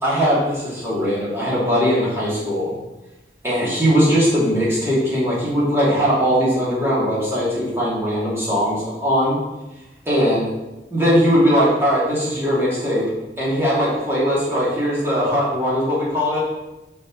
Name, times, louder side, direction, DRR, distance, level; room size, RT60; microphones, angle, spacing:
voice 1, 0.0-2.7 3.4-9.4 10.0-10.5 10.9-13.1 13.4-16.4, equal, 15° right, -8 dB, 2.7 m, -20 dB
5.2 x 5.2 x 6.1 m, 1.0 s
head